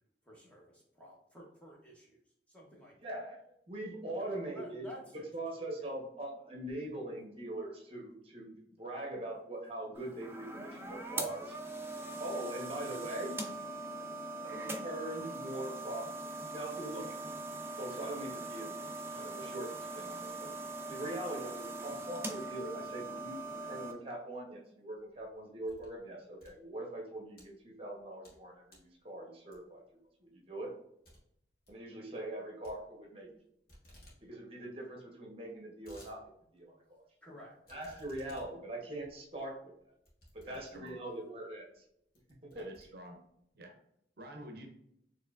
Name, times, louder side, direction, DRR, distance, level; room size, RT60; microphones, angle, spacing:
voice 1, 0.2-2.2 2.5-3.1 4.2-5.3 5.8-5.9 37.2-37.5, equal, 10° left, -3 dB, 0.9 m, -52 dB
voice 2, 3.0-3.4 3.7-4.9 5.1-11.6 12.2-13.4 14.3-16.1 16.5-17.1 17.8-18.7 19.1-20.5 20.9-29.8 30.2-30.7 31.7-33.3 34.2-37.0 37.7-39.7 40.3-41.8 42.5-42.7, right 1 dB, 30° right, 0 dB, 0.9 m, -42 dB
sound 1, 9.9-23.9, right 2 dB, 15° right, 0.4 m, -41 dB
sound 2, 25.0-26.0 26.3-27.4 27.9-28.4 28.7-29.0 29.5-29.9 30.3-30.4 30.7-30.8 31.0-31.2 31.5-31.8 32.6-33.4 33.7-34.2 34.5-34.6 34.8-34.9 35.4-36.1 36.6-36.7 37.6-41.1 41.7-41.8 42.1-43.4, equal, 55° left, 1.4 m, -59 dB
voice 3, 40.5-41.0 42.5-43.2 43.5-43.7 44.2-44.7, right 1 dB, 60° right, 3 dB, 0.6 m, -49 dB
4.5 x 3.1 x 2.4 m, 0.75 s
head